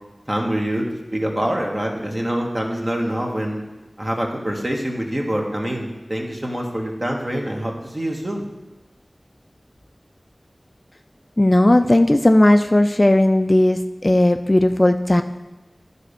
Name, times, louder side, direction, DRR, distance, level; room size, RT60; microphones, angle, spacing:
voice 1, 0.3-3.6 4.0-8.4, right 1 dB, 35° right, 0 dB, 1.7 m, -25 dB
voice 2, 11.4-15.2, left 1 dB, 30° left, 8 dB, 0.4 m, -16 dB
11.0 x 4.2 x 6.7 m, 1.2 s
wide cardioid pair, 55°, 0 cm